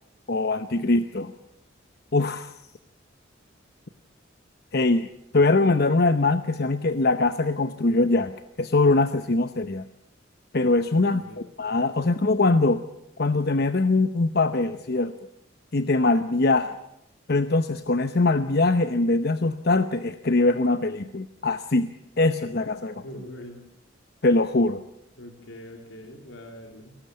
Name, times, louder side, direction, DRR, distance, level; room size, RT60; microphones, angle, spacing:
voice 1, 0.3-1.3 2.1-2.5 4.7-5.1 5.3-9.8 10.5-12.8 13.2-15.1 15.7-16.8 17.3-21.9 22.2-23.0 24.2-24.8, left 2 dB, 55° left, 10 dB, 0.8 m, -22 dB
voice 2, 10.9-11.4 23.0-23.6 25.2-27.0, left 1 dB, 80° left, 2 dB, 3.6 m, -43 dB
23.5 x 19.0 x 8.4 m, 0.80 s
head